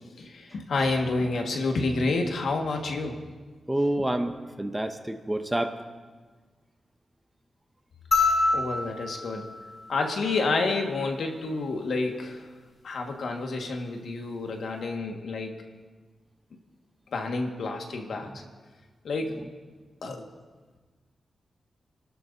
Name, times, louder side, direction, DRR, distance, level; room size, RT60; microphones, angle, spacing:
voice 1, 0.2-3.2 4.0-4.1 8.5-9.5 9.9-12.5 12.8-15.6 17.1-18.3 19.0-19.4 20.0-20.3, left 3 dB, 75° left, 2 dB, 1.6 m, -29 dB
voice 2, 3.7-5.8 18.2-18.3, right 1 dB, 10° right, 7 dB, 0.8 m, -28 dB
sound 1, 8.1-10.7 12.3-12.4, left 3 dB, 40° left, 4.1 m, -27 dB
30.0 x 12.5 x 2.7 m, 1.4 s
wide cardioid pair, 130°, 0 cm